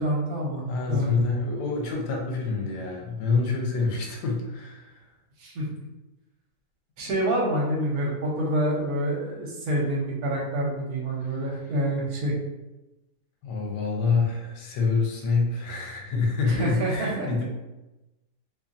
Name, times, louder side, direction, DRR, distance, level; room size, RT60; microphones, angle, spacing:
voice 1, 0.0-1.1 5.4-5.7 7.0-12.3 16.5-17.4, right 1 dB, 70° right, -2 dB, 1.1 m, -27 dB
voice 2, 0.7-5.0 13.4-17.4, left 4 dB, 90° left, 0 dB, 1.2 m, -26 dB
2.8 x 2.3 x 2.5 m, 1.0 s
omnidirectional pair, 1.8 m